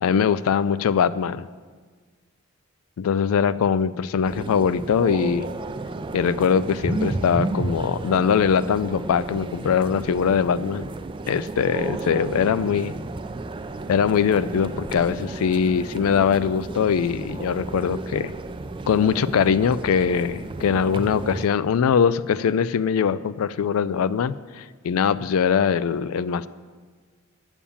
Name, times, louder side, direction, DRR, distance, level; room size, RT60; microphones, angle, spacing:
voice 1, 0.0-1.5 3.0-5.5 6.1-10.8 11.3-12.9 13.9-18.3 18.9-26.5, left 7 dB, 80° left, 17 dB, 0.3 m, -22 dB
sound 1, 4.2-21.5, right 2 dB, 25° right, 0.3 m, -32 dB
8.5 x 7.1 x 7.0 m, 1.5 s
head